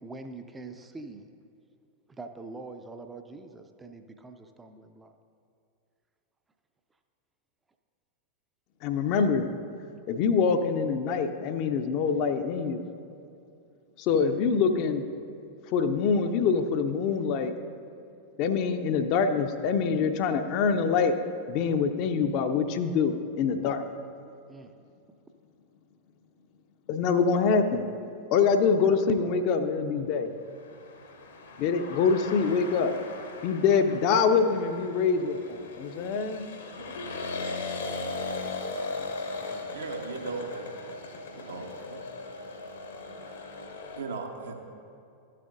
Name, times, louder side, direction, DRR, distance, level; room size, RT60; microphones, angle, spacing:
voice 1, 0.0-1.3 2.1-5.1 24.5-24.7 39.4-39.7, right 3 dB, 10° right, 7 dB, 0.4 m, -44 dB
voice 2, 8.8-9.5 10.1-12.8 14.0-15.0 15.7-17.5 18.4-21.2 21.5-23.8 26.9-27.8 28.3-30.3 31.6-32.9 33.4-36.4, left 5 dB, 45° left, 8 dB, 0.5 m, -25 dB
sound 1, 30.5-44.0, left 3 dB, 65° left, 0.9 m, -38 dB
voice 3, 39.7-40.7 41.3-42.0 44.0-44.5, right 4 dB, 70° right, 2 dB, 0.9 m, -37 dB
13.0 x 7.5 x 2.6 m, 2.6 s
figure-of-eight pair, 90°, 0 cm